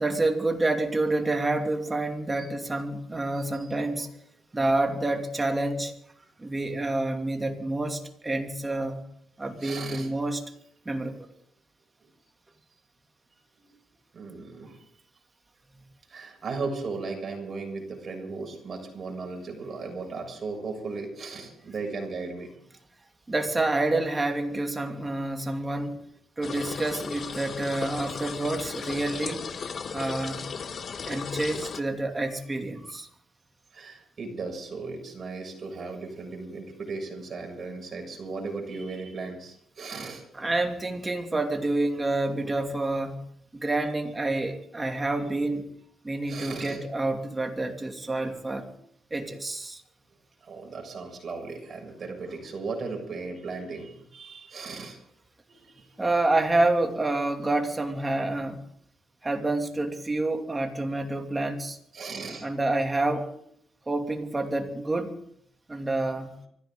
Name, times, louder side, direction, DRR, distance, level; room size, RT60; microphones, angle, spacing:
voice 1, 0.0-4.1 4.5-5.9 6.4-9.0 9.4-10.4 10.8-11.2 15.7-15.8 23.3-26.0 26.4-29.5 29.9-30.4 31.0-33.1 40.4-43.2 43.5-45.7 46.0-48.7 49.1-49.8 56.0-58.6 59.2-61.8 62.4-63.3 63.9-65.1 65.7-66.3, right 2 dB, 20° right, 4 dB, 2.6 m, -28 dB
voice 2, 3.3-3.7 9.6-10.1 13.6-13.7 14.1-14.8 16.1-22.5 33.7-40.5 43.6-43.7 46.3-46.8 50.4-55.0 55.5-56.1 61.9-62.5, right 4 dB, 45° right, 2 dB, 6.9 m, -37 dB
sound 1, 26.4-31.8, left 6 dB, 50° left, 1.1 m, -36 dB
24.5 x 15.5 x 3.9 m, 0.68 s
cardioid pair, 90°, 0 cm